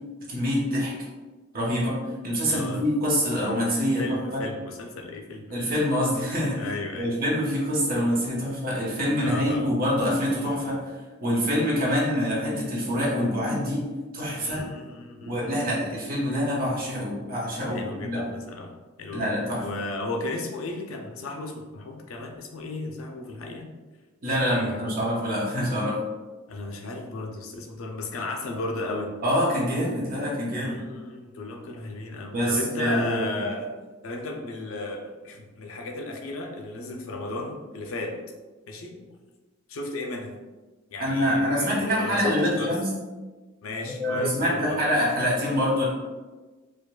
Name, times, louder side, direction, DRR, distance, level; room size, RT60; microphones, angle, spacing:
voice 1, 0.3-0.9 1.5-2.0 2.2-4.4 5.5-6.6 7.0-10.9 11.2-13.8 14.1-14.6 15.2-18.3 19.1-19.6 24.2-26.0 29.2-30.8 32.3-33.3 41.0-42.9 44.0-45.9, equal, 45° right, -4 dB, 1.1 m, -25 dB
voice 2, 2.5-2.8 4.0-5.7 6.5-7.1 9.2-9.7 14.4-15.5 17.7-19.3 19.6-23.7 24.4-24.9 26.5-29.2 30.6-33.7 34.0-38.3 38.7-39.1 39.7-40.4 40.9-42.7 43.6-44.8, left 2 dB, 90° left, 3 dB, 0.5 m, -35 dB
4.9 x 2.3 x 2.3 m, 1.3 s
head